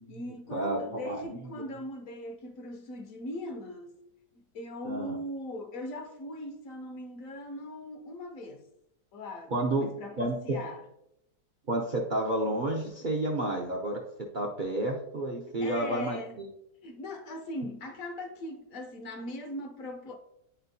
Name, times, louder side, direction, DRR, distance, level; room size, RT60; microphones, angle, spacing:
voice 1, 0.1-4.0 4.3-8.6 9.1-10.9 15.6-16.4 16.8-20.2, left 1 dB, 65° left, 1.2 m, -40 dB
voice 2, 1.0-1.4 4.8-5.2 9.5-9.9 10.2-10.3 11.7-14.0 14.3-16.5, right 1 dB, 50° right, 0.6 m, -30 dB
9.5 x 4.3 x 2.7 m
omnidirectional pair, 1.6 m